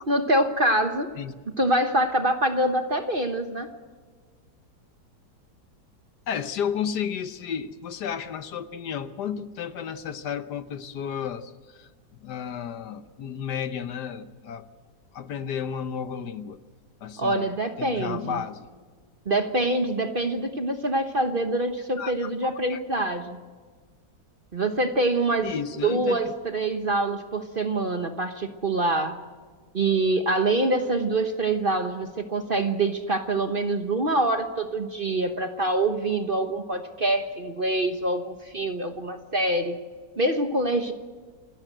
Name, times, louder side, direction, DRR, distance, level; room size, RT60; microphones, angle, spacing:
voice 1, 0.1-1.1 1.6-3.7 17.2-18.4 19.3-23.4 24.5-25.5 25.8-29.2 29.7-39.8 40.2-40.9, right 2 dB, 35° right, 6 dB, 1.1 m, -25 dB
voice 2, 6.3-11.9 12.2-14.7 15.1-16.6 17.0-17.5 17.8-18.7 22.0-22.8 25.4-26.3, left 8 dB, 65° left, 11 dB, 1.4 m, -32 dB
27.5 x 14.0 x 7.9 m, 1.5 s
omnidirectional pair, 2.0 m